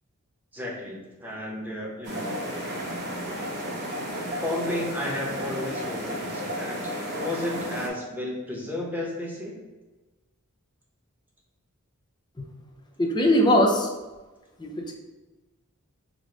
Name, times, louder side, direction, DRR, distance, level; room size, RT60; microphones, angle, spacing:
voice 1, 0.5-2.5 4.4-9.5, left 1 dB, 10° right, -3 dB, 0.7 m, -33 dB
sound 1, 2.0-7.9, equal, 50° right, 0.7 m, -33 dB
voice 2, 13.0-13.9 14.6-14.9, equal, 20° left, 1 dB, 0.5 m, -21 dB
4.8 x 2.0 x 3.9 m, 1.2 s
head